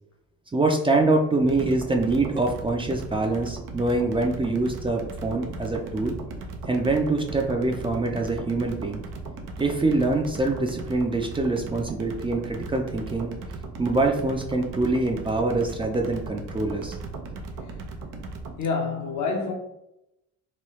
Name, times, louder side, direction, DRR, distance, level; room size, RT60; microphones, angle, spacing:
voice 1, 0.5-6.1 6.7-9.0 9.6-13.3 13.8-17.0, right 2 dB, 20° right, 0.4 m, -24 dB
sound 1, 1.4-18.6, right 2 dB, 90° right, 0.6 m, -37 dB
voice 2, 18.6-19.5, left 4 dB, 70° left, 0.7 m, -27 dB
3.0 x 2.3 x 3.0 m
cardioid pair, 90°, 30 cm